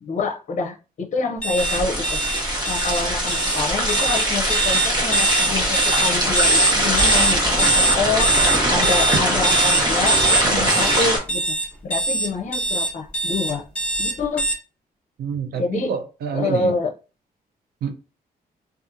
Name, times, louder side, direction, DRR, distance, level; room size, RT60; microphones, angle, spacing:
voice 1, 0.0-2.2 2.6-8.4 8.7-11.6 11.8-13.7 14.0-14.5 15.5-15.9 16.3-16.9, left 4 dB, 50° left, 0.5 m, -27 dB
sound 1, 1.4-14.5, right 2 dB, 5° left, 1.0 m, -22 dB
sound 2, 1.6-11.2, right 1 dB, 25° right, 0.9 m, -21 dB
voice 2, 15.2-16.7 17.8-17.9, right 6 dB, 80° right, 0.5 m, -27 dB
2.7 x 2.4 x 2.5 m
cardioid pair, 90°, 16 cm